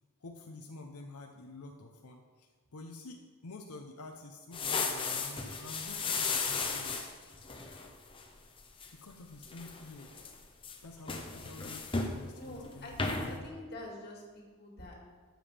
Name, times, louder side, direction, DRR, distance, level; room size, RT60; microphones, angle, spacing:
voice 1, 0.2-7.0 8.9-10.1 10.8-13.0 15.1-15.2, left 2 dB, 90° left, 3 dB, 0.8 m, -49 dB
sound 1, 4.5-8.2 8.6-8.9 9.3-10.4 10.6-12.2 12.6-12.7 13.0-13.4, left 4 dB, 25° left, 0.7 m, -35 dB
voice 2, 12.3-15.0, left 1 dB, 45° left, -2 dB, 2.1 m, -46 dB
12.5 x 7.6 x 3.4 m, 1.5 s
head